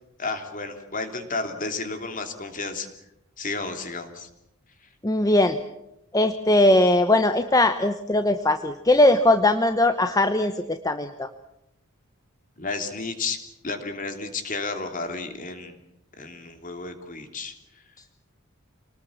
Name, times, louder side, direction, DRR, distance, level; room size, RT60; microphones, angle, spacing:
voice 1, 0.2-2.9 3.4-4.3 12.6-13.4 13.6-15.8 16.2-17.5, left 3 dB, 40° left, 6 dB, 3.0 m, -32 dB
voice 2, 5.0-5.6 6.1-11.3, left 1 dB, 15° left, 9 dB, 0.9 m, -20 dB
27.5 x 20.0 x 7.3 m, 0.85 s
head